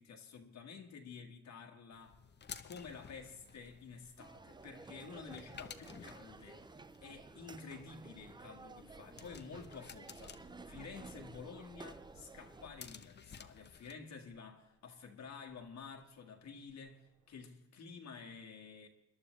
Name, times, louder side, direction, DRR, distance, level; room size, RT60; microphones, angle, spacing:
voice 1, 0.0-2.2 2.6-6.6 7.0-18.9, left 5 dB, 65° left, 1.7 m, -51 dB
sound 1, 1.9-13.9, left 6 dB, 35° left, 0.9 m, -55 dB
sound 2, 3.0-17.5, right 3 dB, 50° right, 2.6 m, -67 dB
sound 3, 4.2-12.7, right 3 dB, 15° right, 0.5 m, -54 dB
22.0 x 11.0 x 3.2 m
cardioid pair, 90°, 30 cm